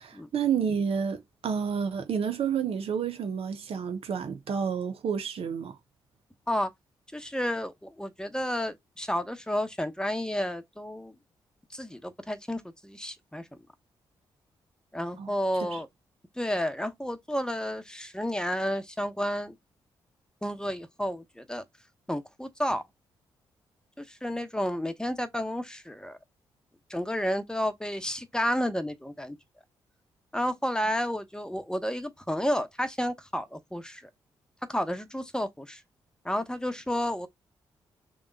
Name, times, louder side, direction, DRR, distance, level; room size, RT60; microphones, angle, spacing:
voice 1, 0.0-5.8 15.2-15.3 15.7-15.8, right 7 dB, 60° right, 0.8 m, -30 dB
voice 2, 7.1-11.1 11.7-13.5 14.9-15.9 16.4-19.5 20.4-21.6 22.1-22.8 24.0-26.2 26.9-29.4 30.3-34.0 34.7-35.8 36.2-37.3, equal, 5° left, 1.0 m, -31 dB
3.6 x 3.0 x 3.9 m
hypercardioid pair, 40°, 11 cm